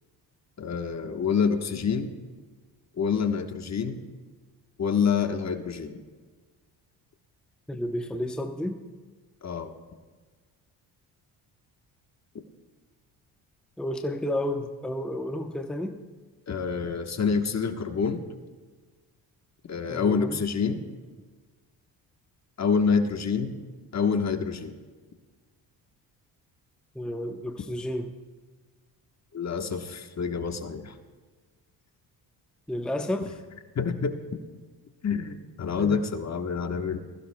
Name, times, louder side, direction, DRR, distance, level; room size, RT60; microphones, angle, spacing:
voice 1, 0.6-2.1 3.0-4.0 4.8-6.0 9.4-9.7 16.5-18.2 19.7-20.8 22.6-23.5 23.9-24.7 29.3-30.9 33.7-34.2 35.0-37.0, left 6 dB, 35° left, 7 dB, 1.2 m, -27 dB
voice 2, 7.7-8.8 13.8-16.0 19.9-20.4 26.9-28.1 32.7-33.4 35.8-36.0, left 1 dB, ahead, 5 dB, 0.8 m, -31 dB
20.5 x 15.0 x 2.2 m, 1.4 s
supercardioid pair, 65°, 44 cm